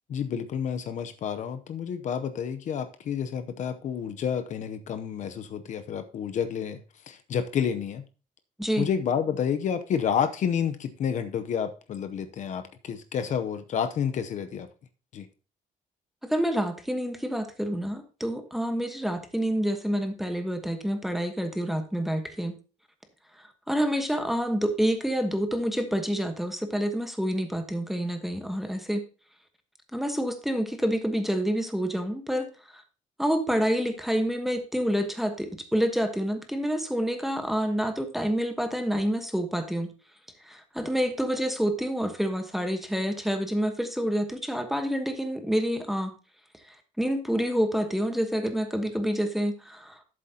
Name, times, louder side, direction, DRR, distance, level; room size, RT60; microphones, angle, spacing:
voice 1, 0.1-6.8 7.1-8.0 8.8-14.7 15.1-15.3, left 7 dB, 55° left, 0.7 m, -29 dB
voice 2, 8.6-8.9 16.2-22.5 23.7-29.0 29.9-32.5 32.7-32.8 33.2-39.9 40.4-46.1 47.0-50.0, equal, ahead, 1.2 m, -28 dB
11.0 x 7.7 x 2.8 m
cardioid pair, 135°, 15 cm